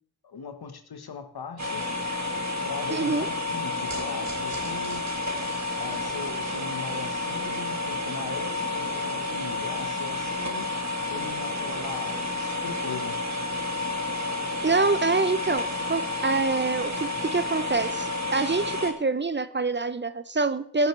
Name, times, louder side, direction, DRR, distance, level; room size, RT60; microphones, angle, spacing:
voice 1, 0.2-1.9 2.6-5.1 5.8-10.7 11.1-13.2, left 5 dB, 70° left, 8 dB, 1.3 m, -39 dB
sound 1, 1.6-18.9, left 2 dB, 45° right, 1.8 m, -30 dB
voice 2, 2.9-3.3 14.6-20.9, right 3 dB, 30° right, 13 dB, 0.6 m, -26 dB
sound 2, 3.9-10.3, right 3 dB, 90° right, 3.0 m, -47 dB
15.5 x 7.2 x 3.3 m, 0.63 s
cardioid pair, 50°, 39 cm